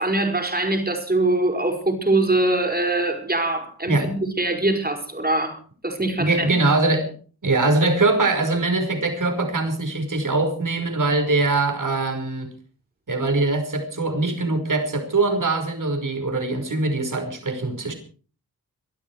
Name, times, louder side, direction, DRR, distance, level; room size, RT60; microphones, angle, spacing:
voice 1, 0.0-6.5, right 2 dB, 25° right, 4 dB, 5.3 m, -23 dB
voice 2, 6.2-7.1 7.4-12.5 13.1-17.9, right 2 dB, 55° right, 6 dB, 5.4 m, -22 dB
23.5 x 12.5 x 4.8 m, 0.40 s
wide cardioid pair, 85°, 37 cm